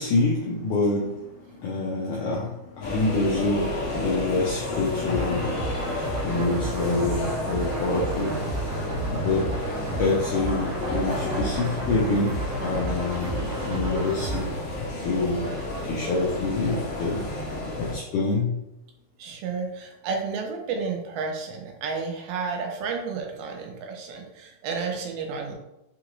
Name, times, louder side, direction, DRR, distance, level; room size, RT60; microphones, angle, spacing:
voice 1, 0.0-5.7 6.2-8.4 9.1-9.6 9.9-15.5 15.8-17.3 17.8-18.6, left 3 dB, 85° left, -3 dB, 1.7 m, -27 dB
sound 1, 2.8-17.9, left 2 dB, 70° left, 1.4 m, -31 dB
sound 2, 5.1-14.4, right 2 dB, 70° right, 1.2 m, -32 dB
voice 2, 19.2-25.6, right 5 dB, 85° right, 2 dB, 2.6 m, -31 dB
6.0 x 2.4 x 3.0 m, 0.91 s
omnidirectional pair, 4.3 m